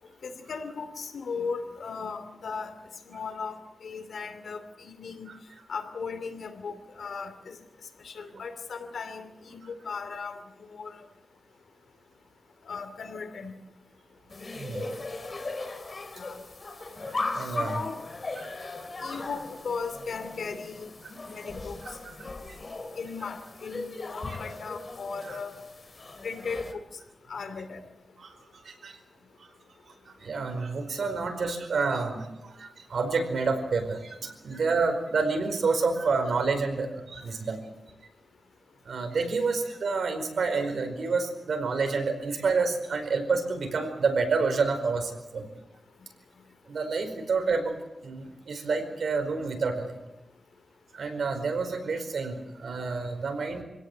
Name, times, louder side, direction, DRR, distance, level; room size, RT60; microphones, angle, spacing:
voice 1, 0.2-2.7 3.1-5.3 5.7-7.5 8.0-9.6 9.8-11.1 12.7-13.5 16.1-16.4 17.6-18.0 19.0-20.9 21.3-21.8 23.0-25.5 26.2-26.8 27.3-27.8, left 5 dB, 80° left, 8 dB, 2.8 m, -37 dB
sound 1, 14.3-26.7, left 3 dB, 40° left, 2.9 m, -38 dB
voice 2, 14.5-14.9 17.3-17.8 18.8-18.9 22.0-22.1 22.5-22.6 24.3-24.4 25.3-25.4 28.2-29.0 29.4-29.5 30.1-37.6 38.8-45.5 46.7-47.7 48.0-49.9 50.9-53.6, right 4 dB, 75° right, 5 dB, 4.8 m, -29 dB
26.5 x 17.5 x 8.1 m, 0.94 s
wide cardioid pair, 130°, 0 cm